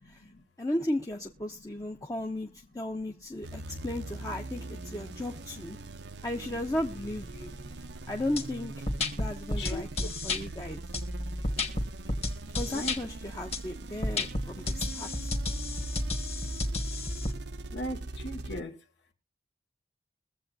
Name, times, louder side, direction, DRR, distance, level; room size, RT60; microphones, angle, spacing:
voice 1, 0.6-5.8 6.2-7.5 8.1-8.9 9.2-10.8 12.6-15.1, left 1 dB, 20° left, 0.8 m, -35 dB
sound 1, 3.4-18.6, right 2 dB, 75° right, 0.7 m, -42 dB
sound 2, 8.4-8.5 8.9-10.4 10.9-13.0 13.5-13.6 14.0-17.3, left 2 dB, 35° left, 1.8 m, -31 dB
voice 2, 17.7-18.7, left 1 dB, 80° left, 1.9 m, -37 dB
22.5 x 7.7 x 2.6 m
head